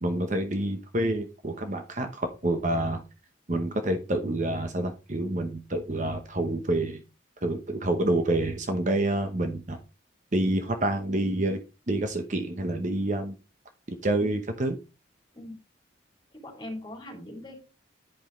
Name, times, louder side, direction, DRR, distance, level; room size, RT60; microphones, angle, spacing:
voice 1, 0.0-3.0 3.5-7.0 7.4-9.8 10.3-11.6 11.9-13.3 13.9-14.8, right 1 dB, 40° right, 6 dB, 0.9 m, -28 dB
voice 2, 16.3-17.6, left 1 dB, 20° left, -1 dB, 3.0 m, -40 dB
10.5 x 5.5 x 3.1 m, 0.30 s
head